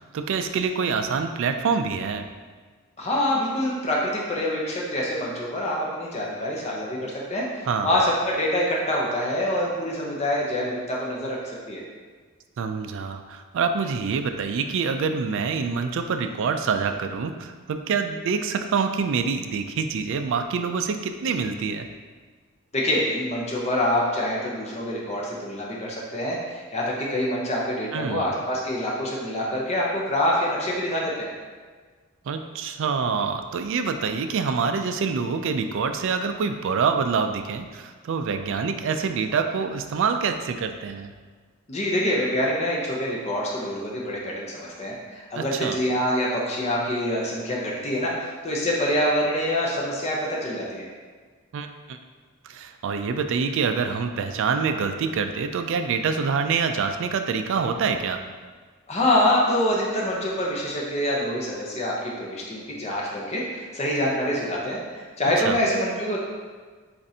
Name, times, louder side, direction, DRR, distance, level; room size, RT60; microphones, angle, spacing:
voice 1, 0.0-2.3 7.7-7.9 12.6-21.9 27.9-28.3 32.3-41.1 45.4-45.8 51.5-52.0 52.4-58.2 65.4-65.6, right 5 dB, 60° right, 7 dB, 0.3 m, -26 dB
voice 2, 3.0-11.8 22.7-31.3 41.7-50.9 58.9-66.2, left 1 dB, 30° left, -3 dB, 0.7 m, -26 dB
7.2 x 2.5 x 2.7 m, 1.5 s
head